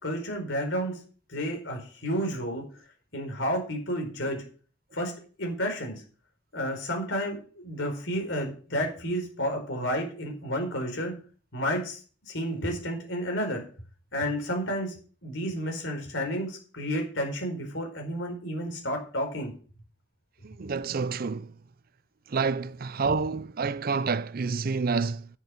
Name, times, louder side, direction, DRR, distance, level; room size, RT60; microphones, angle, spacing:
voice 1, 0.0-1.0 1.3-2.6 3.1-4.4 4.9-5.1 5.4-6.0 6.5-11.1 11.5-13.6 14.1-14.9 15.2-19.5, equal, 75° left, 4.7 m, -31 dB
voice 2, 20.4-21.5 22.3-25.3, right 4 dB, 50° right, 0.5 m, -28 dB
10.0 x 7.2 x 6.5 m
head